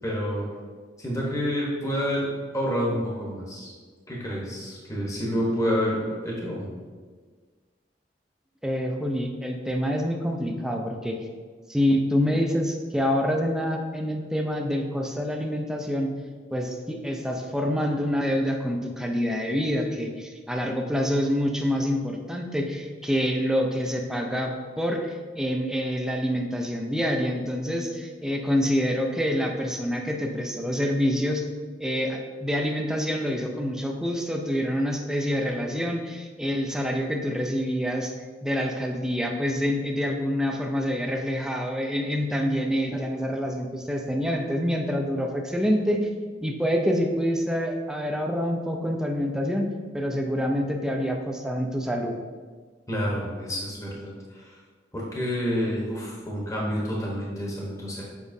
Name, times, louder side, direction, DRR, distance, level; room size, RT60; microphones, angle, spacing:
voice 1, 0.0-0.5 1.0-2.3 2.5-3.7 4.1-6.7 52.9-54.5 54.9-58.0, equal, 20° left, -4 dB, 1.0 m, -28 dB
voice 2, 8.6-11.2 11.7-16.1 16.5-31.5 31.8-38.1 38.4-46.1 46.4-49.7 49.9-52.1, equal, 5° right, 2 dB, 0.5 m, -26 dB
7.1 x 4.9 x 2.7 m, 1.5 s
head